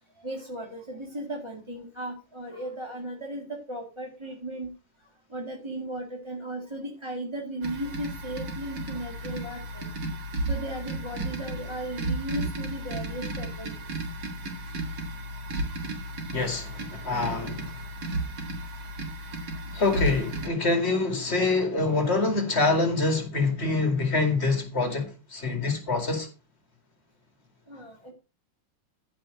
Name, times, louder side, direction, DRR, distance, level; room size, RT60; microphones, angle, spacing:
voice 1, 0.2-4.7 5.3-9.9 10.5-13.7 15.5-15.6 16.6-16.7 18.1-18.2 19.6-19.7 27.7-28.1, right 1 dB, 15° right, 1.9 m, -36 dB
sound 1, 7.6-20.5, right 1 dB, 90° right, 3.3 m, -33 dB
voice 2, 16.3-17.7 19.7-26.3, left 3 dB, 35° left, 2.4 m, -25 dB
14.5 x 5.6 x 5.1 m
omnidirectional pair, 2.1 m